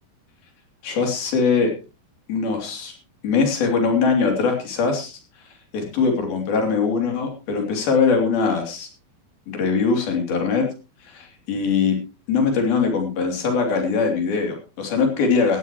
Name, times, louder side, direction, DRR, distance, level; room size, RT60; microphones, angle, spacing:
voice 1, 0.8-1.7 2.3-2.9 3.2-5.2 5.7-8.9 9.5-10.7 11.1-12.0 12.3-15.6, left 5 dB, 75° left, 3 dB, 4.9 m, -21 dB
18.0 x 14.5 x 3.1 m, 0.32 s
omnidirectional pair, 4.3 m